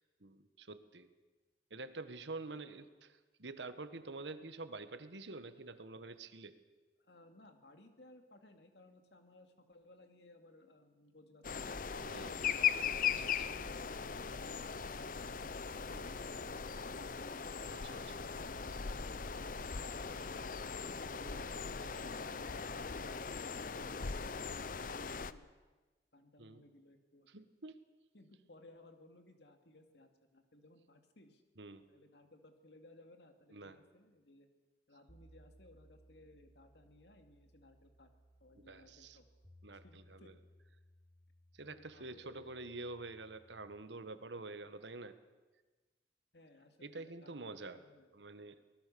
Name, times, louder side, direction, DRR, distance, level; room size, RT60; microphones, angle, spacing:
voice 1, 0.2-1.1 1.7-6.5 12.0-13.6 15.9-16.1 17.7-18.2 21.0-21.4 21.8-21.9 26.4-26.6 27.3-27.8 31.6-31.8 33.5-33.8 38.5-39.2 39.6-40.3 41.5-45.1 46.8-47.8 48.1-48.6, right 3 dB, 80° right, 11 dB, 1.4 m, -48 dB
voice 2, 7.0-12.7 13.4-17.1 18.6-22.4 26.1-27.4 28.1-31.4 31.9-34.5 34.9-38.1 38.4-39.2 39.7-40.3 41.6-42.5 46.3-48.1, left 2 dB, 70° left, 6 dB, 2.5 m, -61 dB
sound 1, 11.4-25.3, left 6 dB, 50° left, 0.7 m, -39 dB
sound 2, 35.1-43.8, equal, 15° left, 4.0 m, -64 dB
24.0 x 19.5 x 6.9 m, 1.2 s
head